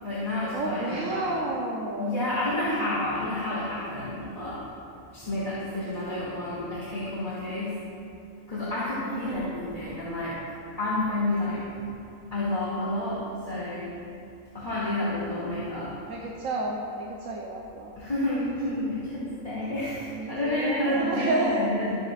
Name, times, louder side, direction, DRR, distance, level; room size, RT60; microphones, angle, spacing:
voice 1, 0.0-1.4 2.0-4.6 5.1-7.8 8.5-10.4 10.8-11.6 12.3-13.9 14.5-15.9 18.0-21.9, left 1 dB, 30° left, -11 dB, 2.4 m, -30 dB
voice 2, 0.5-2.4 9.1-9.5 16.1-17.9 20.2-21.7, right 2 dB, 85° right, -2 dB, 1.4 m, -31 dB
22.0 x 8.1 x 2.5 m, 2.6 s
omnidirectional pair, 1.3 m